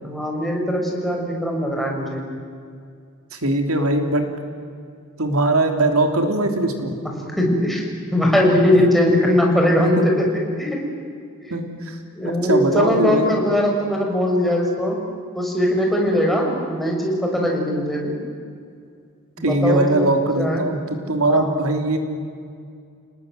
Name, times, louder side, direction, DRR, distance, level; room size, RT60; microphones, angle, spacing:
voice 1, 0.0-2.2 7.4-10.3 10.6-10.8 11.4-11.6 12.2-15.0 15.3-18.2 19.4-20.1 20.3-20.7 21.0-21.5, left 1 dB, ahead, -1 dB, 5.8 m, -20 dB
voice 2, 3.3-4.3 5.2-6.9 9.8-10.1 11.5-11.9 12.5-13.3 17.4-17.6 19.4-20.8 21.1-22.0, right 2 dB, 75° right, 5 dB, 3.3 m, -20 dB
29.5 x 19.5 x 9.3 m, 2.3 s
head